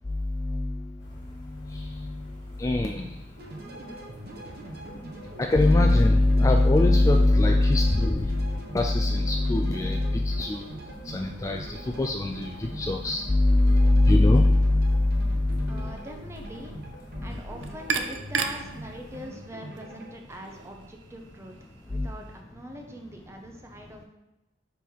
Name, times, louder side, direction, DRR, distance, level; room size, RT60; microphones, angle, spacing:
voice 1, 0.1-0.9 1.5-2.3 2.6-3.2 5.4-10.6 11.1-15.9 17.2-17.3 21.9-22.1, left 2 dB, 15° left, 3 dB, 0.3 m, -22 dB
sound 1, 1.0-19.3, equal, 50° left, 1.5 m, -48 dB
sound 2, 3.4-20.1, right 1 dB, 55° right, 1.1 m, -42 dB
voice 2, 15.7-16.7 17.2-21.5 21.8-24.0, equal, 15° right, 3 dB, 0.7 m, -43 dB
sound 3, 17.3-22.4, right 5 dB, 85° right, 0.5 m, -36 dB
5.3 x 4.6 x 4.5 m, 0.99 s
head